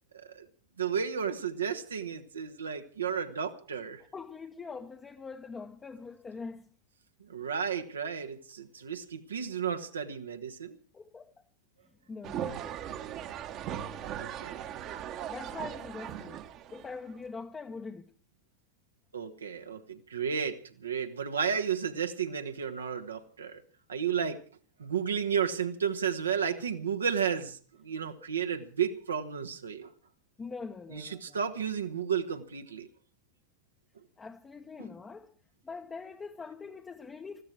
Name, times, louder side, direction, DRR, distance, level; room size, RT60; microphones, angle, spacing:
voice 1, 0.1-0.5 0.8-4.0 7.2-10.8 14.2-14.7 19.1-23.6 23.9-24.4 24.8-29.9 30.9-32.9 34.8-34.9, right 7 dB, 70° right, 1.4 m, -33 dB
voice 2, 4.1-6.7 10.9-11.3 12.1-12.8 15.3-16.4 16.7-18.1 30.4-31.4 34.2-35.3 35.6-37.4, left 4 dB, 15° left, 1.0 m, -43 dB
sound 1, 12.2-17.1, right 10 dB, 35° right, 1.3 m, -38 dB
20.5 x 14.5 x 4.7 m
figure-of-eight pair, 90°, 0 cm